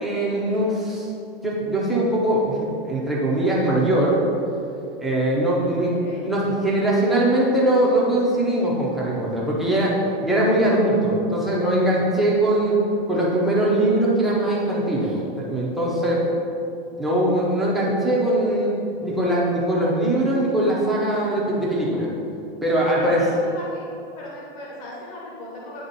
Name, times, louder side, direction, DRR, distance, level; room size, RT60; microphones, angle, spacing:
voice 1, 0.0-1.1 1.4-4.2 5.0-12.8 13.1-16.2 17.0-18.7 19.0-22.1 22.6-23.2, right 1 dB, ahead, -5 dB, 0.4 m, -21 dB
voice 2, 5.6-6.2 23.0-23.9 24.2-25.8, left 1 dB, 35° left, -4 dB, 1.0 m, -38 dB
9.5 x 3.3 x 4.0 m, 2.6 s
supercardioid pair, 165°, 30 cm